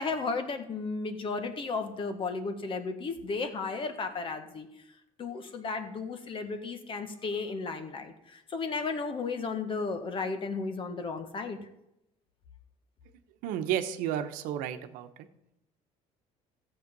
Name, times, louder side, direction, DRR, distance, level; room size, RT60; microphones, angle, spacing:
voice 1, 0.0-4.7 5.2-11.6, left 4 dB, 40° left, 7 dB, 1.6 m, -34 dB
voice 2, 13.4-15.1, right 10 dB, 80° right, 8 dB, 1.0 m, -32 dB
14.0 x 7.8 x 5.3 m, 0.86 s
cardioid pair, 110°, 14 cm